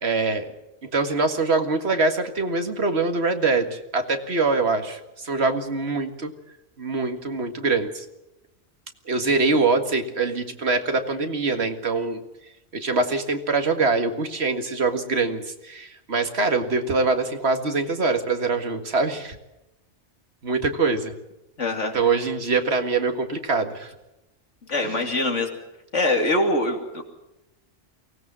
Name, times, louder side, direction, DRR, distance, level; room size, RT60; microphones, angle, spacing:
voice 1, 0.0-0.5 0.8-6.3 6.8-8.1 9.1-12.2 12.7-19.4 20.4-21.1 21.9-23.9 24.8-25.0, right 3 dB, 60° right, 6 dB, 2.1 m, -24 dB
voice 2, 21.6-21.9 24.7-25.5 25.9-27.0, left 2 dB, 85° left, 4 dB, 3.0 m, -23 dB
23.5 x 17.0 x 7.5 m, 0.93 s
omnidirectional pair, 1.2 m